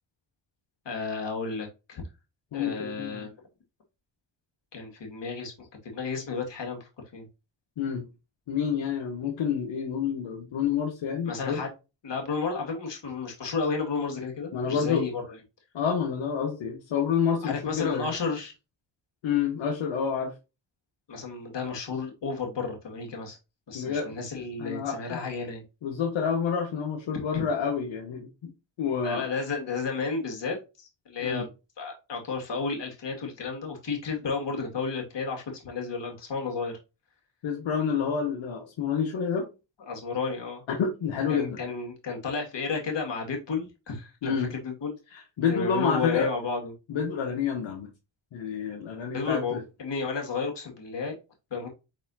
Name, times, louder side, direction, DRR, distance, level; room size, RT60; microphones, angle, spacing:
voice 1, 0.9-2.0 2.5-3.3 4.7-5.5 5.8-6.8 7.1-7.3 11.3-11.7 12.0-15.4 17.4-18.5 21.1-23.4 23.7-25.6 27.3-27.4 29.0-31.4 31.8-36.8 39.9-40.6 41.3-44.9 45.5-46.7 49.1-51.1 51.5-51.7, left 4 dB, 65° left, 1 dB, 2.0 m, -32 dB
voice 2, 2.5-3.3 7.8-8.1 8.5-11.6 14.5-15.0 15.7-18.1 19.2-20.3 23.7-24.2 24.6-25.2 25.8-28.3 28.8-29.3 31.2-31.5 37.4-39.5 40.7-41.6 44.2-44.5 45.1-46.3 46.9-47.9 48.3-49.6, left 6 dB, 80° left, 1 dB, 1.1 m, -28 dB
4.7 x 4.1 x 2.7 m, 0.28 s
cardioid pair, 55°, 46 cm